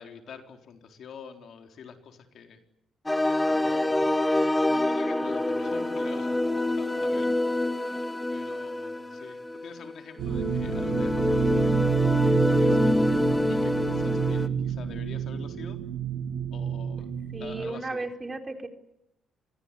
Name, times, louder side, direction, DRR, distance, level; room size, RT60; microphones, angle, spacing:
voice 1, 0.0-2.6 3.5-4.1 4.8-7.3 7.6-7.8 8.3-13.0 13.5-15.8 16.5-17.1 17.4-18.0, left 6 dB, 65° left, 5 dB, 4.0 m, -46 dB
sound 1, 3.1-14.5, left 1 dB, 10° left, 1.7 m, -26 dB
sound 2, 10.2-17.7, right 8 dB, 85° right, 2.9 m, -29 dB
voice 2, 17.3-18.7, right 3 dB, 25° right, 6 dB, 3.8 m, -35 dB
27.0 x 22.0 x 9.9 m, 0.81 s
cardioid pair, 90°, 0 cm